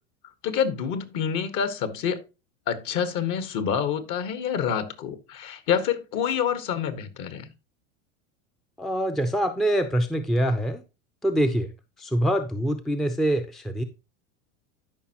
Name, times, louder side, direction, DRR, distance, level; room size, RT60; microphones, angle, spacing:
voice 1, 0.4-2.2 2.7-7.5, left 8 dB, 50° left, 1.5 m, -27 dB
voice 2, 8.8-10.8 11.2-11.7 12.0-13.8, right 1 dB, ahead, 0.5 m, -24 dB
12.5 x 5.5 x 2.9 m
supercardioid pair, 115°, 38 cm